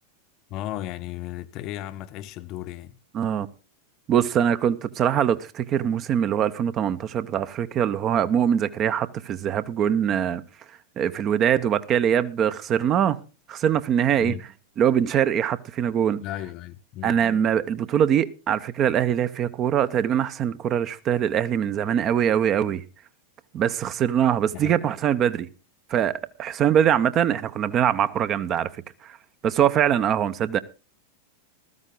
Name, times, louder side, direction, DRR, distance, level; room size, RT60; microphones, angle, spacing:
voice 1, 0.5-3.0 14.2-14.4 16.2-17.2 24.5-24.8, left 13 dB, 40° left, 0.7 m, -35 dB
voice 2, 3.1-3.5 4.1-10.4 11.0-13.2 13.5-14.3 14.8-16.2 17.0-22.8 23.5-25.5 25.9-28.7 29.4-30.6, right 9 dB, 30° right, 0.7 m, -23 dB
15.0 x 13.5 x 3.8 m
figure-of-eight pair, 90°, 0 cm